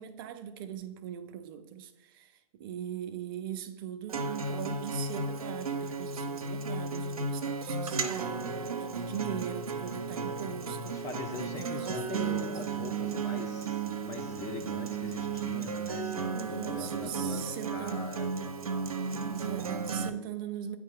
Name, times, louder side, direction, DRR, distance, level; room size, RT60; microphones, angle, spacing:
voice 1, 0.0-11.0 11.3-12.6 15.0-15.1 16.3-18.1 19.2-20.8, right 9 dB, 40° right, 0.5 m, -40 dB
Acoustic guitar, 4.1-20.1, right 4 dB, 90° right, 0.6 m, -34 dB
voice 2, 10.9-18.5, left 5 dB, 15° left, 0.4 m, -43 dB
9.2 x 3.1 x 3.6 m
hypercardioid pair, 125°, 18 cm